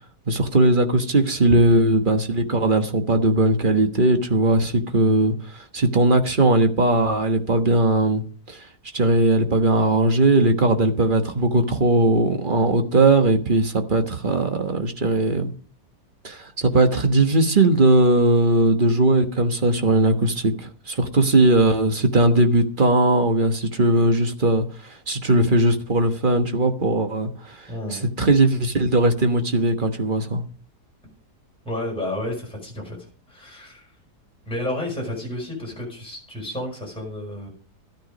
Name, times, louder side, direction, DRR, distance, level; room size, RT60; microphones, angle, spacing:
voice 1, 0.3-8.2 8.5-8.7 8.9-15.5 16.2-30.4, right 2 dB, 35° right, 1.3 m, -19 dB
voice 2, 27.7-28.1 31.7-33.9 34.5-37.5, left 1 dB, 5° left, 5.4 m, -31 dB
13.5 x 9.9 x 5.1 m
omnidirectional pair, 1.7 m